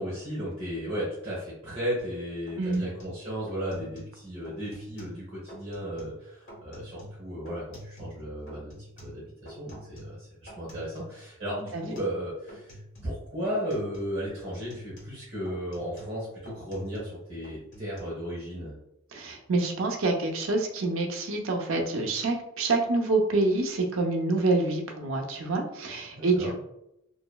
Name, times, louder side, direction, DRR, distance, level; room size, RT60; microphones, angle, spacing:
voice 1, 0.0-18.8 26.1-26.5, equal, 30° right, -9 dB, 1.1 m, -35 dB
sound 1, 2.0-2.2 2.5-4.2 4.4-5.2 5.5-6.2 6.5-8.2 8.5-11.2 11.5-12.2 12.5-13.2 13.4-14.1 14.4-17.2 17.4-18.0, equal, 60° left, 1.3 m, -47 dB
voice 2, 2.6-2.9 11.7-11.8 19.1-26.6, right 3 dB, 75° right, 2 dB, 0.6 m, -27 dB
2.9 x 2.6 x 2.2 m, 0.82 s
head